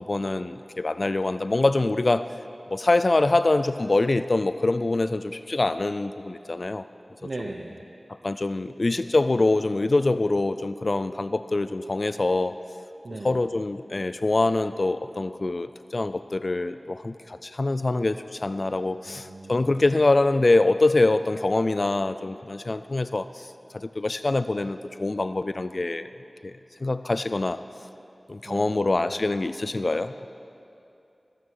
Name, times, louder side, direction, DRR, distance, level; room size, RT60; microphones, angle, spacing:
voice 1, 0.1-2.2 2.7-6.8 8.2-12.6 13.2-23.5 23.7-26.1 26.4-26.5 26.8-27.6 28.3-30.3, left 2 dB, 60° left, 12 dB, 0.3 m, -24 dB
voice 2, 7.2-7.8 13.0-13.4 19.1-19.8 28.4-29.2, right 2 dB, 70° right, 0 dB, 0.8 m, -38 dB
19.0 x 8.7 x 4.7 m, 2.7 s
wide cardioid pair, 40°, 0 cm